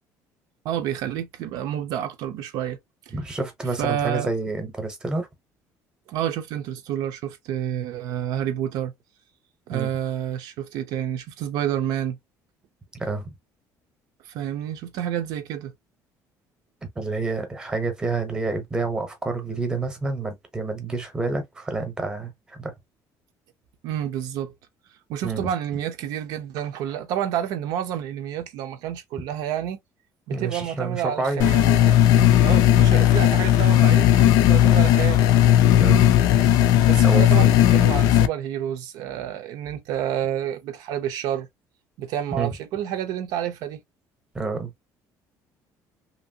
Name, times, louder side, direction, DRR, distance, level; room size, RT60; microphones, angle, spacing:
voice 1, 0.6-2.8 3.1-3.2 3.8-4.3 6.1-8.9 9.7-12.2 14.3-15.7 23.8-24.5 25.1-29.8 30.3-32.0 32.4-35.2 36.9-41.5 42.0-43.8, right 10 dB, 65° right, 0.5 m, -29 dB
voice 2, 3.1-5.3 9.7-9.9 12.9-13.3 17.0-22.7 25.2-25.4 30.3-31.5 32.1-32.4 35.8-36.0 37.0-37.5 42.3-42.5 44.3-44.7, right 3 dB, 10° right, 0.8 m, -28 dB
sound 1, 31.4-38.3, left 12 dB, 70° left, 0.4 m, -16 dB
2.9 x 2.6 x 2.6 m
cardioid pair, 175°, 7 cm